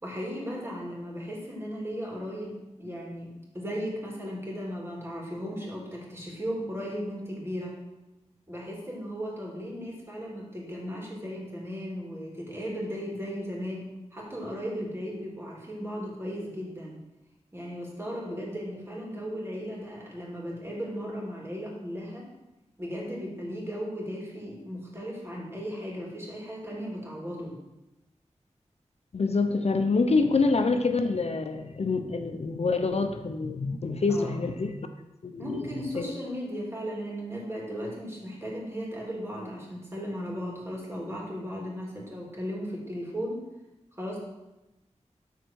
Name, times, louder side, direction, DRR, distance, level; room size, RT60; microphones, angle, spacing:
voice 1, 0.0-3.3 3.5-7.8 8.5-16.9 17.5-22.2 22.8-27.6 34.1-34.4 35.4-43.4 44.0-44.2, equal, 20° right, -4 dB, 3.2 m, -36 dB
voice 2, 29.1-34.9 35.2-35.4 36.0-36.1, left 3 dB, 60° left, 7 dB, 0.7 m, -26 dB
13.0 x 4.5 x 4.7 m, 0.98 s
wide cardioid pair, 75°, 12 cm